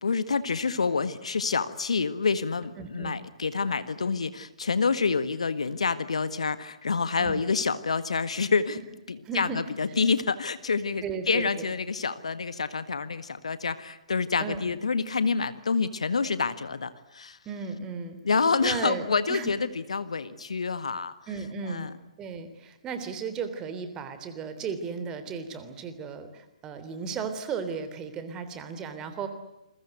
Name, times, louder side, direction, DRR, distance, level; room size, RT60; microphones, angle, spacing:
voice 1, 0.0-8.8 9.1-17.4 18.2-21.1 21.7-21.9, left 5 dB, 65° left, 13 dB, 1.7 m, -27 dB
voice 2, 2.8-3.2 7.2-7.4 9.2-9.6 11.0-11.7 14.4-14.6 17.4-18.2 18.6-19.5 21.3-21.9 22.2-29.3, right 5 dB, 20° right, 9 dB, 3.4 m, -35 dB
29.0 x 22.0 x 8.0 m, 0.94 s
figure-of-eight pair, 130°, 4 cm